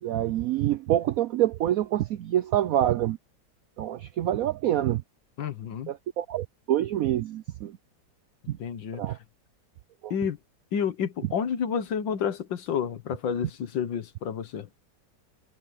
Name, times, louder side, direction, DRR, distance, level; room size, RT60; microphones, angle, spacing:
voice 1, 0.0-3.2 3.8-5.0 5.4-5.5 5.9-7.8 8.5-8.6 8.9-9.2 10.0-10.1, right 12 dB, 75° right, 0.8 m, -26 dB
voice 2, 5.4-5.9 8.6-9.0 10.1-10.4 10.7-14.7, left 7 dB, 80° left, 1.9 m, -30 dB
omnidirectional pair, 2.0 m